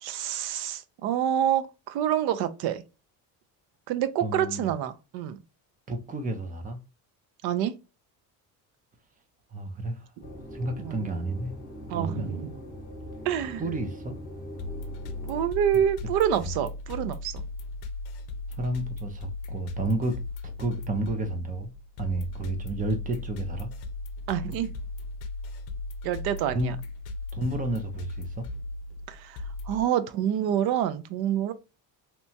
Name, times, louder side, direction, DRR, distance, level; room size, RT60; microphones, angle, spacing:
voice 1, 0.0-2.8 3.9-5.4 7.4-7.7 10.8-10.9 11.9-12.5 13.3-13.6 15.3-17.4 24.3-24.7 26.0-26.8 29.1-29.4 29.7-31.5, right 10 dB, 85° right, 0.5 m, -27 dB
voice 2, 4.2-4.7 5.9-6.8 9.5-10.1 10.5-11.5 11.9-12.4 13.6-14.2 16.4-16.5 18.6-20.2 20.6-21.7 22.0-23.7 26.5-26.7 27.3-28.5, right 2 dB, 25° right, 0.4 m, -31 dB
sound 1, 10.2-15.5, equal, 25° left, 0.9 m, -41 dB
sound 2, 14.6-29.8, left 2 dB, 90° left, 0.5 m, -37 dB
2.9 x 2.2 x 2.6 m
cardioid pair, 165°, 37 cm